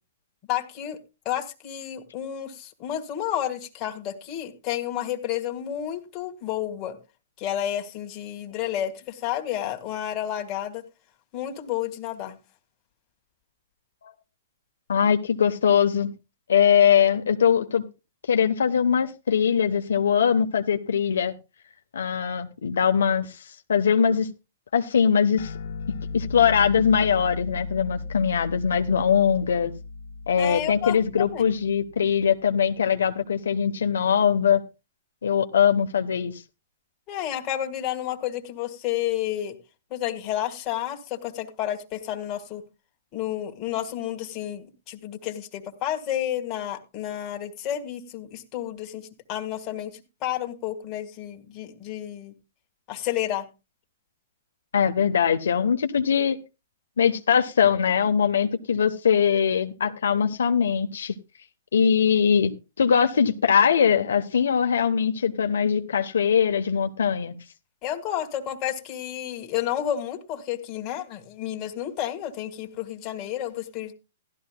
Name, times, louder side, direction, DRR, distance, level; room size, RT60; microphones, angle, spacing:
voice 1, 0.5-1.0 1.3-7.0 7.4-10.8 11.3-12.4 30.4-31.5 37.1-39.6 39.9-42.6 43.1-52.3 52.9-53.5 67.8-73.9, left 11 dB, 35° left, 1.8 m, -31 dB
voice 2, 14.9-16.1 16.5-17.8 18.3-21.3 21.9-24.3 24.7-25.5 26.1-29.7 30.3-34.6 35.2-36.4 54.7-56.4 57.0-61.1 61.7-67.4, left 7 dB, 85° left, 0.9 m, -21 dB
sound 1, 25.4-32.2, left 3 dB, 65° left, 1.5 m, -36 dB
15.5 x 12.5 x 2.2 m
hypercardioid pair, 135°, 0 cm